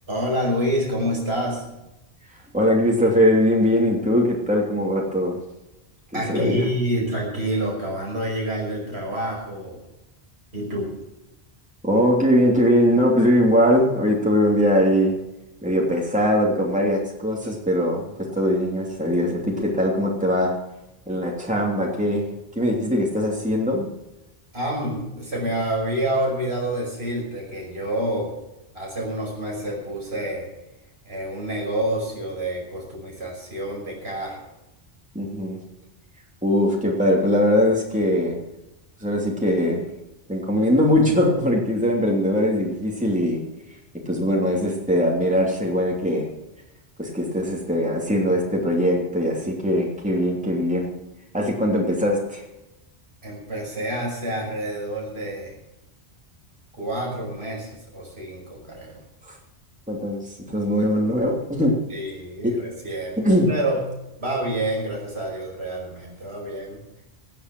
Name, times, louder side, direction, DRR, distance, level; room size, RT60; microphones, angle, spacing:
voice 1, 0.1-1.6 6.1-9.9 10.5-10.9 24.5-28.3 28.7-30.5 31.1-34.4 53.2-55.6 56.7-59.0 61.9-63.9 64.2-67.0, right 1 dB, 75° right, -2 dB, 6.0 m, -28 dB
voice 2, 2.5-5.4 6.1-6.7 11.8-15.1 15.6-20.5 21.1-23.9 35.1-35.6 36.4-38.4 39.0-39.8 40.3-43.4 44.1-46.3 47.0-50.9 51.3-52.4 59.2-59.3 59.9-61.8 62.4-62.5 63.2-63.5, equal, 5° right, -2 dB, 3.0 m, -21 dB
17.0 x 10.0 x 6.1 m, 0.93 s
omnidirectional pair, 1.1 m